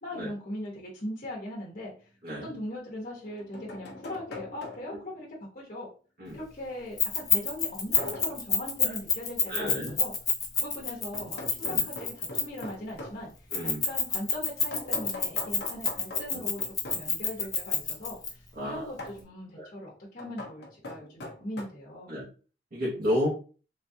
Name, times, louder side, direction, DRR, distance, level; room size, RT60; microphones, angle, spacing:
voice 1, 0.0-1.9 2.4-5.3 5.5-5.9 6.3-10.1 10.6-13.3 13.8-22.2, left 1 dB, 45° left, -4 dB, 1.1 m, -40 dB
sound 1, 1.7-1.8 3.1-5.1 8.0-8.4 11.1-13.2 14.7-17.1 19.0-19.3 20.2-21.6, left 2 dB, 65° left, 0.8 m, -42 dB
Keys jangling, 7.0-12.7 13.5-18.3, left 6 dB, 20° left, 0.7 m, -27 dB
voice 2, 9.5-9.9 11.6-11.8 13.5-13.8 18.6-18.9 19.6-19.7 22.1-22.2 22.7-23.3, equal, 55° right, -7 dB, 1.0 m, -31 dB
3.8 x 2.4 x 2.7 m, 0.38 s
head